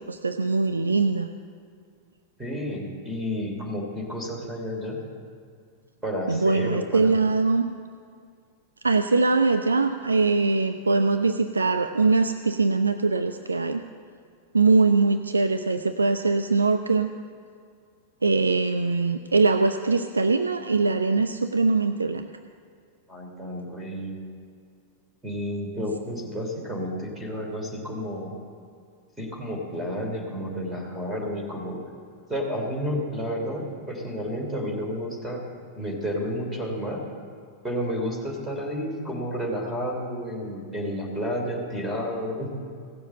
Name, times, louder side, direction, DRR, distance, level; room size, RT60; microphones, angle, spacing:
voice 1, 0.1-1.3 6.3-7.7 8.8-13.8 14.5-17.1 18.2-22.3, right 3 dB, 75° right, 7 dB, 0.4 m, -22 dB
voice 2, 2.4-5.0 6.0-7.1 23.1-24.1 25.2-28.3 29.2-31.8 32.3-35.4 35.7-37.0 37.6-42.5, equal, 10° right, -1 dB, 3.2 m, -31 dB
16.5 x 7.0 x 7.7 m, 2.2 s
figure-of-eight pair, 90°, 0 cm